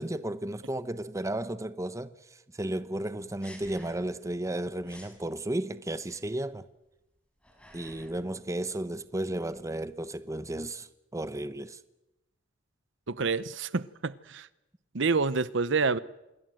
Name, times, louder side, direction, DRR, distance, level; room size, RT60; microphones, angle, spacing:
voice 1, 0.0-2.1 2.5-6.7 7.7-11.8, right 1 dB, 15° right, 0.9 m, -34 dB
sound 1, 3.4-4.3 4.5-4.6 4.8-5.2 6.0-6.6 7.2-8.3 8.6-10.2, equal, 5° left, 5.9 m, -53 dB
voice 2, 13.1-14.5 14.9-16.0, right 4 dB, 65° right, 0.9 m, -28 dB
26.5 x 22.5 x 7.8 m
head